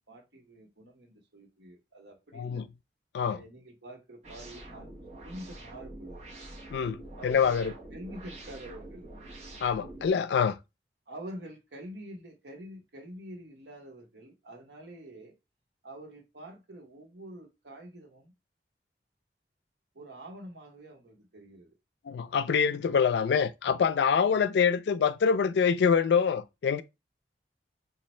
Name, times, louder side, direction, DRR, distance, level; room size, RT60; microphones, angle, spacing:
voice 1, 0.0-2.6 3.3-4.9 5.2-6.3 7.2-9.1 11.1-15.3 15.8-18.3 19.9-21.7 24.2-24.6, right 1 dB, 80° right, 1.0 m, -47 dB
voice 2, 2.3-2.7 3.1-3.4 6.7-7.7 9.6-10.6 22.1-26.8, left 6 dB, 75° left, 0.3 m, -25 dB
sound 1, 4.2-10.1, right 2 dB, 40° right, 0.9 m, -46 dB
3.1 x 2.3 x 4.3 m
head